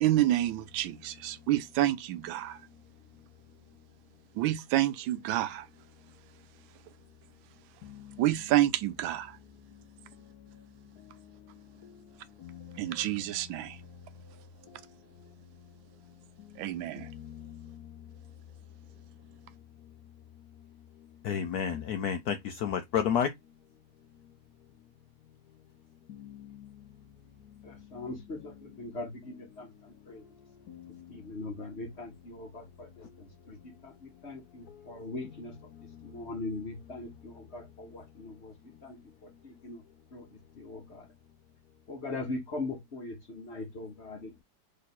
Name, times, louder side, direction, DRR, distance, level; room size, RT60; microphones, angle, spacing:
voice 1, 0.0-2.6 4.3-5.7 8.2-9.4 12.7-13.8 16.6-17.1, right 14 dB, 85° right, 1.3 m, -28 dB
voice 2, 21.2-23.3, left 8 dB, 75° left, 0.9 m, -29 dB
voice 3, 27.9-28.4 28.8-29.1 29.6-29.7 30.1-30.2 31.1-32.6 34.2-35.5 36.1-38.5 38.8-38.9 39.6-39.8 40.1-40.2 40.6-41.0 41.9-44.4, left 2 dB, 40° left, 1.1 m, -39 dB
3.2 x 3.2 x 4.1 m
omnidirectional pair, 2.1 m